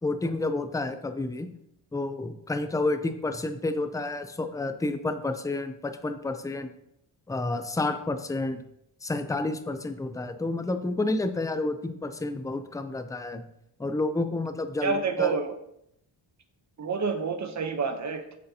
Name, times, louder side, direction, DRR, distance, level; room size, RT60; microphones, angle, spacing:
voice 1, 0.0-1.5 1.9-6.7 7.3-8.6 9.0-13.4 13.8-15.3, left 2 dB, 10° left, 9 dB, 0.4 m, -30 dB
voice 2, 14.8-15.6 16.8-18.4, right 5 dB, 40° right, 7 dB, 0.9 m, -28 dB
9.5 x 6.4 x 2.8 m, 0.78 s
wide cardioid pair, 115°, 45 cm